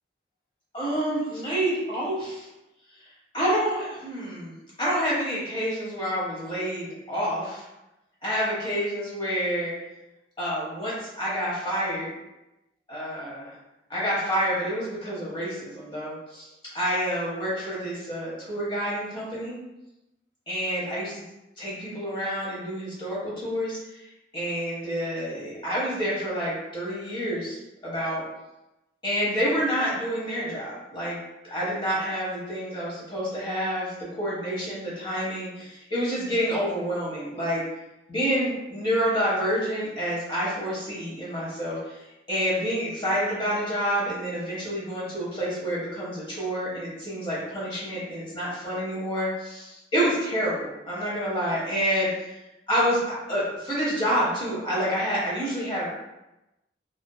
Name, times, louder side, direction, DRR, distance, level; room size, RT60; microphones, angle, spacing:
voice 1, 0.7-2.5 3.3-7.6 8.2-9.7 10.4-12.1 12.9-13.5 13.9-16.5 16.7-19.6 20.5-21.2 21.6-24.0 24.3-28.2 29.0-31.2 31.4-37.6 38.1-42.0 42.3-52.4 52.7-55.9, equal, 25° left, -7 dB, 0.9 m, -28 dB
2.6 x 2.5 x 2.3 m, 0.95 s
head